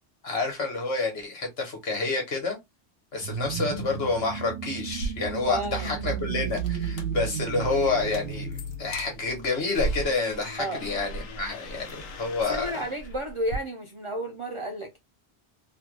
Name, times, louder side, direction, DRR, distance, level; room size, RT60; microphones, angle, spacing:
voice 1, 0.2-2.6 3.1-12.7, left 3 dB, 60° left, 1.4 m, -29 dB
sound 1, 3.2-9.7, right 6 dB, 80° right, 0.9 m, -33 dB
sound 2, 4.9-13.6, right 1 dB, 80° left, 1.0 m, -38 dB
voice 2, 5.5-5.9 10.6-10.8 12.5-15.0, right 1 dB, 50° right, 0.4 m, -32 dB
2.9 x 2.2 x 3.1 m
omnidirectional pair, 1.2 m